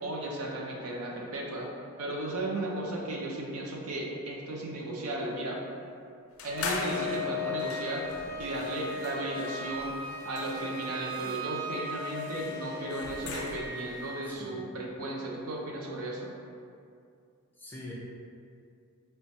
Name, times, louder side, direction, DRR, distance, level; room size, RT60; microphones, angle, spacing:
voice 1, 0.0-1.7 2.0-5.6 6.4-8.1 8.4-10.0 10.2-16.3, right 1 dB, 70° right, -2 dB, 0.5 m, -35 dB
sound 1, 6.4-13.9, left 3 dB, 65° left, 0.4 m, -41 dB
Wind instrument woodwind instrument, 6.4-14.3, left 2 dB, 40° right, 1.3 m, -38 dB
voice 2, 14.3-14.7 17.6-17.9, left 1 dB, 10° left, -6 dB, 0.5 m, -45 dB
4.4 x 2.2 x 2.7 m, 2.4 s
head